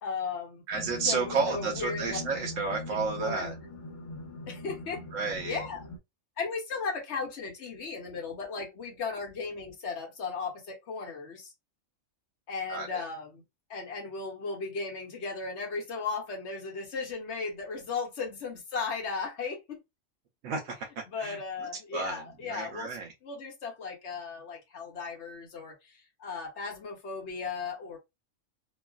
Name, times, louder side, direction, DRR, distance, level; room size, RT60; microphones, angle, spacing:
voice 1, 0.0-0.6 1.0-2.2 3.2-3.5 4.5-5.0 5.4-5.8 6.4-11.5 12.5-13.4 13.7-19.8 21.1-22.9 23.2-28.0, left 4 dB, 60° left, 1.1 m, -36 dB
sound 1, 0.7-6.0, left 2 dB, 30° left, 0.6 m, -41 dB
voice 2, 0.7-3.5 5.1-5.6 12.7-13.0 20.4-20.7 21.2-21.4 21.9-22.2 22.5-23.1, right 4 dB, 70° right, 1.0 m, -31 dB
3.1 x 2.3 x 2.3 m
omnidirectional pair, 1.4 m